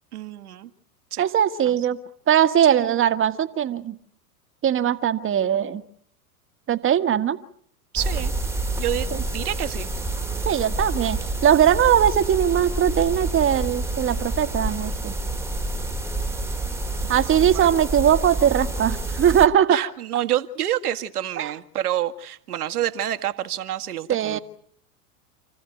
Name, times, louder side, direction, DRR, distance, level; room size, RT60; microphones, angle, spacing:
voice 1, 0.1-0.7 1.1-1.2 1.7-1.8 2.7-3.0 7.9-8.3 8.8-9.9 17.0-17.1 17.4-17.7 19.7-24.4, right 12 dB, 70° right, 8 dB, 2.0 m, -28 dB
voice 2, 1.2-2.0 2.3-4.0 4.6-5.8 6.7-7.4 9.1-9.2 10.4-15.1 17.1-19.8 21.4-21.5 24.1-24.4, right 9 dB, 25° right, 11 dB, 1.6 m, -20 dB
sound 1, 8.0-19.5, right 2 dB, 5° right, 1.8 m, -28 dB
29.0 x 15.5 x 9.3 m, 0.65 s
hypercardioid pair, 95°, 46 cm